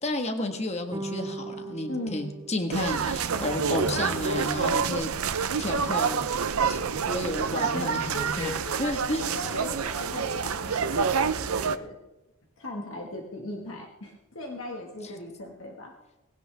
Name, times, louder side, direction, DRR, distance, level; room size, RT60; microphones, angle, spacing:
voice 1, 0.0-5.1 5.6-6.2 6.7-8.5 8.8-9.3 15.0-15.1, left 2 dB, 30° left, 5 dB, 1.4 m, -32 dB
sound 1, 0.9-3.5, right 3 dB, 15° right, 0.5 m, -39 dB
voice 2, 1.9-2.3 7.5-12.0 12.6-15.9, left 1 dB, 65° left, 1 dB, 1.7 m, -38 dB
sound 2, 2.7-11.8, right 6 dB, 90° right, 0.7 m, -28 dB
19.5 x 16.5 x 3.4 m, 1.0 s
head